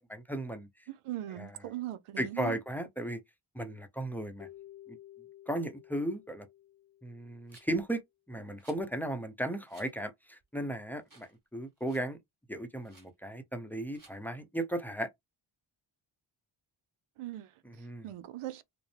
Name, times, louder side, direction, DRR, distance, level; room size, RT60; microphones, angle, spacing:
voice 1, 0.0-0.9 1.3-1.7 2.2-3.2 3.5-4.5 4.9-5.0 5.5-6.5 7.0-8.0 8.3-12.2 12.5-15.1 17.6-18.1, right 1 dB, 5° left, 0.7 m, -36 dB
voice 2, 1.0-2.6 17.2-17.5 18.0-18.6, right 14 dB, 90° right, 0.6 m, -39 dB
Keyboard (musical), 4.4-7.6, left 13 dB, 65° left, 0.5 m, -53 dB
Rattle, 7.5-7.8 8.6-8.8 9.7-9.9 10.4-10.5 11.0-11.4 11.6-12.1 12.8-13.1 13.9-14.2, right 3 dB, 40° right, 2.7 m, -59 dB
5.2 x 2.1 x 3.2 m
cardioid pair, 80°, 50 cm